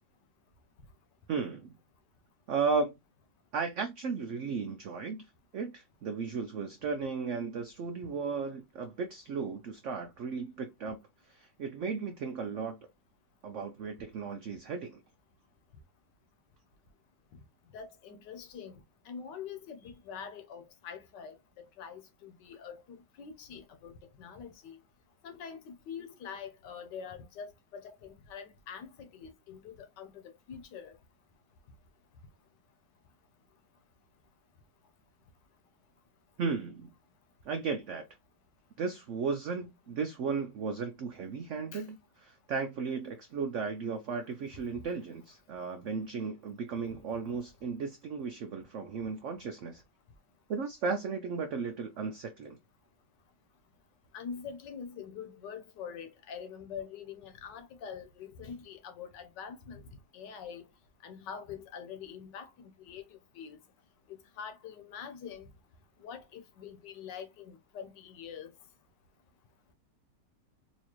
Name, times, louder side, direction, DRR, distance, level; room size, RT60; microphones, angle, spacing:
voice 1, 1.3-1.7 2.5-3.0 3.5-5.2 5.5-11.0 11.3-12.8 13.4-15.0 36.4-36.9 37.4-38.0 38.8-49.8 50.5-52.6, right 5 dB, 80° right, 0.6 m, -35 dB
voice 2, 17.7-18.8 19.1-24.8 25.2-30.9 41.7-41.8 46.9-47.0 54.1-59.8 60.1-60.6 61.0-63.6 64.1-65.5 66.0-68.5, left 7 dB, 75° left, 1.4 m, -45 dB
4.1 x 2.7 x 2.9 m
omnidirectional pair, 1.9 m